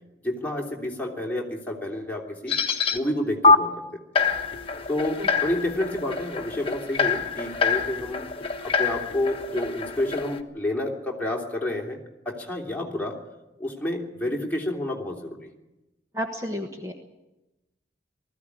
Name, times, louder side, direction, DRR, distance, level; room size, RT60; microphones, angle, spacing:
voice 1, 0.2-2.5 2.9-3.7 4.2-4.3 4.9-8.2 8.6-12.0 12.2-13.1 13.6-15.4, left 1 dB, 10° left, -2 dB, 3.3 m, -29 dB
sound 1, 2.5-3.0 3.4-3.6 4.2-10.4, left 4 dB, 30° left, 1.3 m, -25 dB
voice 2, 16.1-16.9, equal, 20° right, 2 dB, 1.4 m, -31 dB
20.0 x 15.0 x 9.9 m, 1.0 s
head